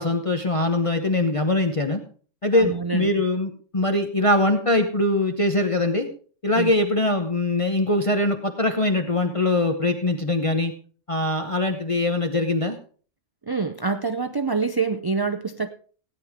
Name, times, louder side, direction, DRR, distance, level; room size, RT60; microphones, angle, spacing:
voice 1, 0.0-2.0 2.4-6.1 6.4-10.7 11.1-12.8, left 1 dB, 30° left, 5 dB, 0.9 m, -22 dB
voice 2, 2.5-3.1 6.5-6.7 13.5-15.7, right 4 dB, 35° right, 10 dB, 0.4 m, -26 dB
17.0 x 10.0 x 3.6 m, 0.42 s
omnidirectional pair, 1.2 m